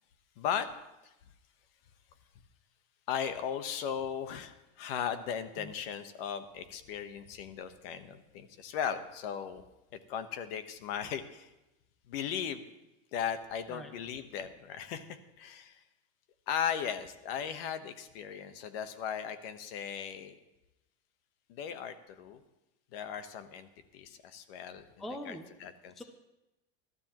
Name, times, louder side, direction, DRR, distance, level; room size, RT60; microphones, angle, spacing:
voice 1, 0.4-0.7 1.0-1.1 3.1-9.6 9.9-11.5 12.1-12.6 13.1-15.8 16.5-20.3 21.5-22.4 22.9-24.8 25.2-25.9, left 8 dB, 60° left, 10 dB, 1.2 m, -37 dB
voice 2, 25.0-25.5 26.0-26.1, equal, ahead, 5 dB, 0.4 m, -42 dB
21.0 x 13.0 x 3.1 m, 0.96 s
supercardioid pair, 170°, 33 cm